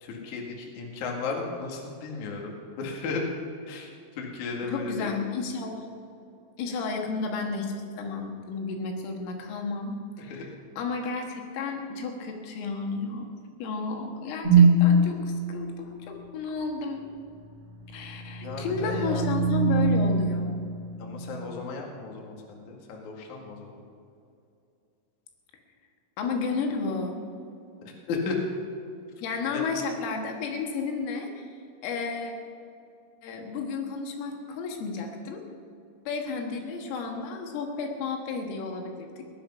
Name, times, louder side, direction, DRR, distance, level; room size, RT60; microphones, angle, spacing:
voice 1, 0.0-3.2 3.7-5.1 10.3-10.5 18.4-19.4 21.0-23.8 28.1-28.4 29.5-29.6, left 4 dB, 50° left, 0 dB, 2.5 m, -35 dB
voice 2, 4.7-5.9 6.6-10.5 10.8-13.3 13.6-17.1 17.9-20.6 26.2-27.2 29.2-31.4 31.8-32.3 33.2-35.4 36.1-39.2, left 4 dB, 80° left, 2 dB, 4.1 m, -32 dB
sound 1, 14.4-15.0 17.9-21.4, right 3 dB, 20° right, 0.6 m, -22 dB
18.0 x 11.0 x 5.6 m, 2.5 s
omnidirectional pair, 5.9 m